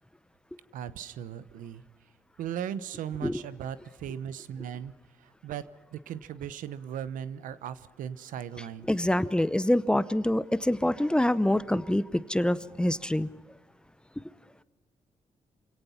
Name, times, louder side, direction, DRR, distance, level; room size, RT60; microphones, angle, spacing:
voice 1, 0.7-1.8 2.4-4.9 5.4-5.6 5.9-8.9, right 9 dB, 85° right, 15 dB, 0.9 m, -37 dB
voice 2, 8.9-13.3, left 1 dB, 5° left, 16 dB, 0.7 m, -25 dB
27.5 x 17.5 x 5.7 m, 1.2 s
cardioid pair, 90°, 13 cm